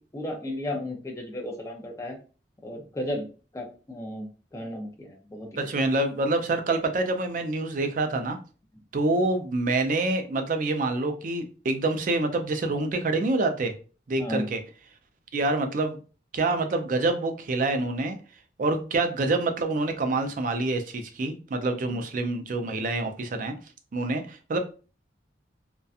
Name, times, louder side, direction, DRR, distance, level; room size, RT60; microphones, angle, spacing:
voice 1, 0.0-2.2 2.6-3.3 3.5-5.5 14.2-14.5 21.9-22.0, left 1 dB, 15° left, 1 dB, 0.4 m, -34 dB
voice 2, 5.6-8.4 8.9-13.7 14.1-14.6 15.3-16.0 16.3-18.2 18.6-23.5 23.9-24.6, right 2 dB, 45° right, 6 dB, 0.4 m, -26 dB
2.7 x 2.2 x 2.3 m, 0.36 s
head